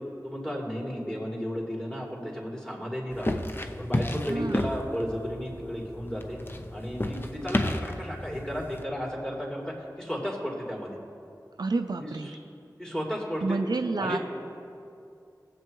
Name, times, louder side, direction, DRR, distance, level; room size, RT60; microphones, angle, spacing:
voice 1, 0.2-3.4 3.8-6.4 6.7-11.0 12.0-12.4 12.8-13.6 14.0-14.2, equal, 10° left, -4 dB, 2.8 m, -34 dB
sound 1, 3.1-8.8, left 1 dB, 30° left, 0.6 m, -32 dB
voice 2, 4.3-4.6 11.6-12.3 13.4-14.2, right 3 dB, 75° right, 7 dB, 0.4 m, -29 dB
18.5 x 7.6 x 3.1 m, 2.5 s
wide cardioid pair, 45°, 7 cm